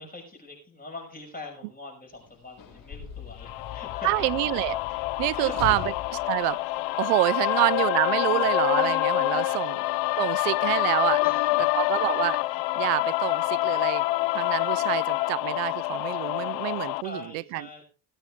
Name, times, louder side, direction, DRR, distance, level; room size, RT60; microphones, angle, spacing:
voice 1, 0.0-4.3 5.4-5.8 7.4-7.6 9.5-9.9 11.2-11.7 17.0-17.8, left 2 dB, 20° left, 5.9 m, -43 dB
Sliding door / Slam, 2.1-7.5 8.4-8.6, left 9 dB, 45° left, 4.9 m, -41 dB
sound 1, 3.5-17.0, left 19 dB, 75° left, 0.8 m, -26 dB
voice 2, 4.0-4.8 5.2-5.8 6.3-6.6 7.0-9.8 10.2-11.2 11.7-12.4 12.8-14.1 14.3-17.8, right 24 dB, 90° right, 0.5 m, -27 dB
17.5 x 9.0 x 3.5 m
supercardioid pair, 85°, 44 cm